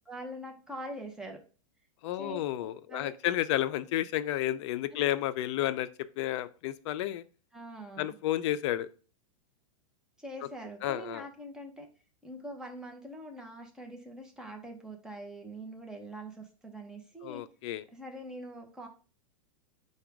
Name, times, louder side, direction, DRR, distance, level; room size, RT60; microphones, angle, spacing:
voice 1, 0.1-1.4 2.2-3.1 4.9-5.1 7.5-8.1 10.2-11.9 12.2-17.4 17.9-18.9, right 1 dB, 5° right, 2 dB, 0.8 m, -43 dB
voice 2, 2.0-5.9 6.2-7.2 8.0-8.9 10.8-11.3 17.2-17.8, left 13 dB, 55° left, 14 dB, 0.4 m, -31 dB
4.8 x 2.3 x 4.6 m, 0.37 s
hypercardioid pair, 120°, 18 cm